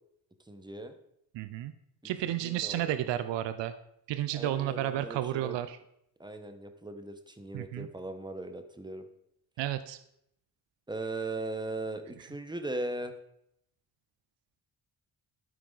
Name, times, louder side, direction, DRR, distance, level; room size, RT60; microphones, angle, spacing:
voice 1, 0.5-0.9 2.4-3.1 4.3-5.6 6.2-9.0 10.9-13.1, right 2 dB, 10° right, 8 dB, 1.1 m, -38 dB
voice 2, 1.3-1.7 2.0-3.7 4.1-5.8 7.5-7.9 9.6-10.0, right 12 dB, 90° right, 12 dB, 0.5 m, -32 dB
12.5 x 4.7 x 3.9 m, 0.76 s
cardioid pair, 55°, 42 cm